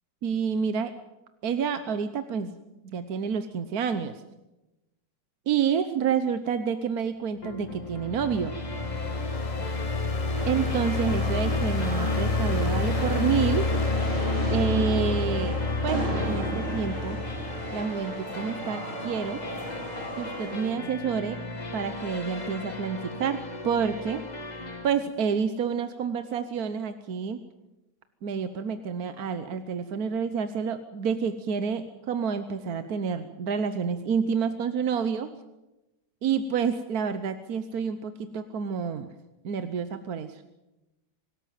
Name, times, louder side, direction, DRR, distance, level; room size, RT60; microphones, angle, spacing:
voice 1, 0.2-0.9 1.4-2.6 2.8-4.2 5.5-8.6 10.4-13.7 14.5-17.2 17.7-19.4 20.2-21.4 21.7-24.2 24.8-27.4 28.2-35.3 36.2-39.1 39.4-40.4, right 6 dB, 55° right, 10 dB, 1.3 m, -29 dB
sound 1, 7.4-24.9, left 2 dB, 20° left, 1.7 m, -38 dB
sound 2, 7.6-17.8, left 3 dB, 55° left, 0.4 m, -28 dB
sound 3, 10.3-20.7, right 2 dB, 85° right, 6.7 m, -35 dB
25.0 x 13.5 x 9.3 m, 0.99 s
omnidirectional pair, 2.2 m